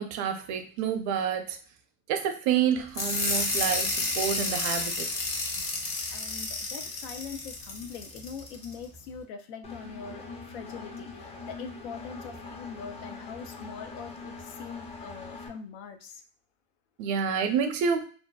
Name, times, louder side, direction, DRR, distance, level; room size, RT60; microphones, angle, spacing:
voice 1, 0.0-1.6 2.1-5.1 5.6-5.8 17.0-18.0, right 7 dB, 60° right, 6 dB, 0.6 m, -28 dB
sound 1, 2.9-8.7, left 3 dB, 40° left, 0.9 m, -31 dB
voice 2, 6.1-10.2 10.5-16.2, left 6 dB, 85° left, 8 dB, 0.5 m, -42 dB
Engine, 9.6-15.5, left 3 dB, 20° left, 0.5 m, -42 dB
2.6 x 2.2 x 2.2 m, 0.42 s
supercardioid pair, 110°, 33 cm